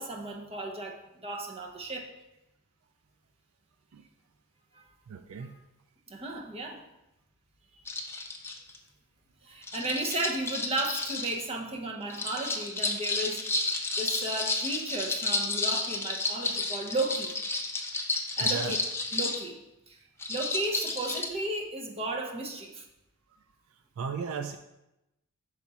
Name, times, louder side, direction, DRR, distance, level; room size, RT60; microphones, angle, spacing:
voice 1, 0.0-2.1 4.7-4.9 5.4-5.6 6.1-6.8 9.4-13.4 13.7-17.3 18.4-18.8 19.1-19.6 19.9-20.0 20.3-22.9, right 2 dB, 25° right, 0 dB, 0.8 m, -34 dB
voice 2, 5.1-5.5 18.4-18.7 24.0-24.6, right 6 dB, 65° right, 7 dB, 0.4 m, -35 dB
sound 1, 7.9-8.8 9.6-11.4 12.1-19.4 20.2-21.3, left 3 dB, 10° left, 0.5 m, -31 dB
5.7 x 4.8 x 4.1 m, 0.91 s
head